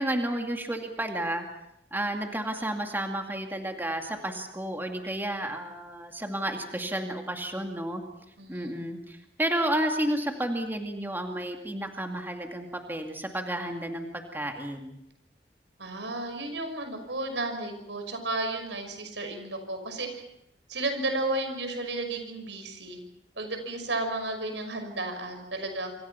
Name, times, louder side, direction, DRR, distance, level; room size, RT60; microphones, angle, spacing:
voice 1, 0.0-1.4 1.9-8.0 8.5-14.9, right 1 dB, 10° right, 3 dB, 2.4 m, -31 dB
voice 2, 8.4-8.8 15.8-20.2 20.7-23.0 23.4-25.9, right 2 dB, 90° right, 6 dB, 6.0 m, -33 dB
27.0 x 26.5 x 5.8 m, 0.80 s
head